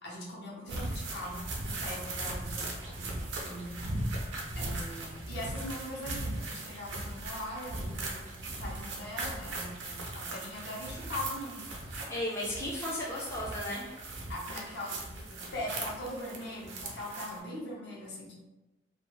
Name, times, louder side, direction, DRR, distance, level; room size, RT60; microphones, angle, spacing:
voice 1, 0.0-3.8 4.6-12.0 14.3-18.3, left 1 dB, 65° left, -4 dB, 0.8 m, -41 dB
sound 1, 0.7-17.4, right 2 dB, 90° right, 0.6 m, -38 dB
voice 2, 12.1-13.9, left 1 dB, 15° left, -6 dB, 0.4 m, -35 dB
2.4 x 2.3 x 3.0 m, 1.1 s
head